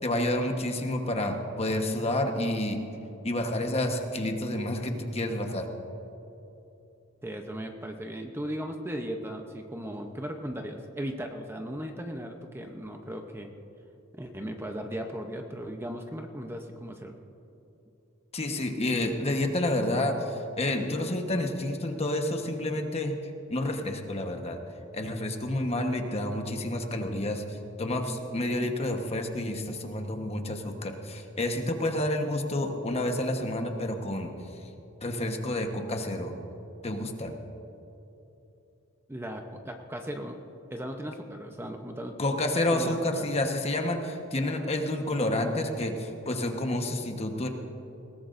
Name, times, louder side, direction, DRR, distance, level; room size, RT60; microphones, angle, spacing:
voice 1, 0.0-2.8 3.2-5.7 18.3-23.2 23.5-24.6 24.9-34.3 35.0-36.3 36.8-37.4 42.2-47.5, left 1 dB, 30° left, 4 dB, 1.1 m, -29 dB
voice 2, 7.2-13.5 14.1-17.1 39.1-40.4 40.7-42.1 42.7-43.0, equal, 10° right, 4 dB, 0.7 m, -37 dB
20.5 x 18.0 x 2.6 m, 3.0 s
head